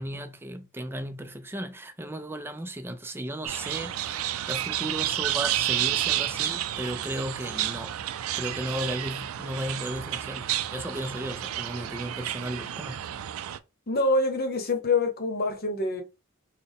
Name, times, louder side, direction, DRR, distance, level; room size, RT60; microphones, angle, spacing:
voice 1, 0.0-7.9 8.4-13.0, right 1 dB, 10° right, 0.4 m, -35 dB
sound 1, 3.4-13.6, right 12 dB, 80° right, 0.4 m, -31 dB
voice 2, 13.9-16.0, left 2 dB, 45° left, 0.9 m, -25 dB
4.2 x 2.2 x 3.5 m
head